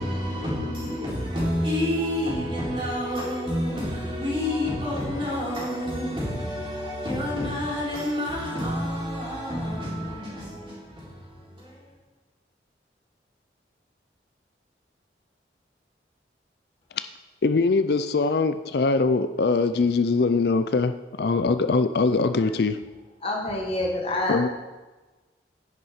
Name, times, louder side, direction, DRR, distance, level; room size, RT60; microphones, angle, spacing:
voice 1, 0.0-11.9, left 1 dB, 30° right, 4.0 m, -29 dB
voice 2, 17.4-22.8 24.3-24.5, left 4 dB, 60° left, 0.4 m, -22 dB
voice 3, 23.2-24.5, left 1 dB, 30° left, 1.5 m, -27 dB
10.5 x 9.7 x 4.4 m
head